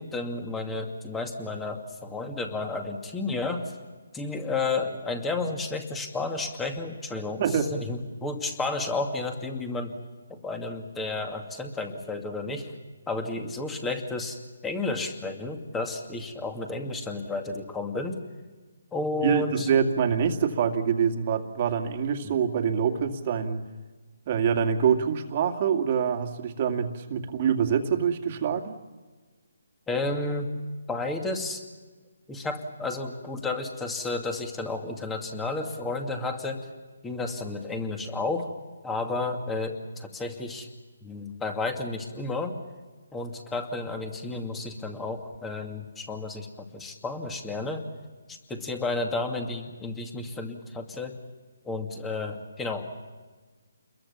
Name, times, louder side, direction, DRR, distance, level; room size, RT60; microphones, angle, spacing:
voice 1, 0.0-3.7 4.1-10.0 10.3-12.7 13.1-18.2 18.9-19.7 22.2-22.4 29.9-30.5 30.9-31.6 32.3-36.7 37.0-38.5 38.8-40.7 41.0-42.5 43.1-47.8 48.3-51.2 51.6-53.0, left 3 dB, 10° left, 4 dB, 2.5 m, -32 dB
voice 2, 19.2-23.6 24.3-28.8, right 7 dB, 35° right, 5 dB, 2.3 m, -25 dB
29.0 x 22.0 x 7.3 m, 1.3 s
hypercardioid pair, 155°, 0 cm